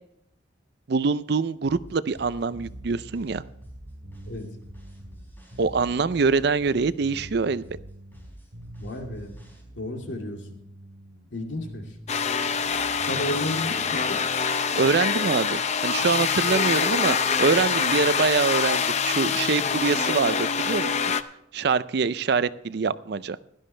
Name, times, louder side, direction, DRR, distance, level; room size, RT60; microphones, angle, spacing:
voice 1, 0.9-3.4 5.6-7.6 14.7-20.9 21.5-23.4, right 4 dB, 55° right, 16 dB, 0.4 m, -24 dB
sound 1, 1.6-9.6, equal, 10° left, 4.1 m, -47 dB
sound 2, 2.5-14.4, right 1 dB, 70° right, 2.6 m, -46 dB
voice 2, 8.8-9.3 9.7-10.6 11.3-11.9 13.0-14.2, left 1 dB, 70° left, 2 dB, 2.4 m, -33 dB
sound 3, 12.1-21.2, left 6 dB, 35° left, 0.5 m, -25 dB
16.5 x 12.0 x 3.3 m, 0.74 s
head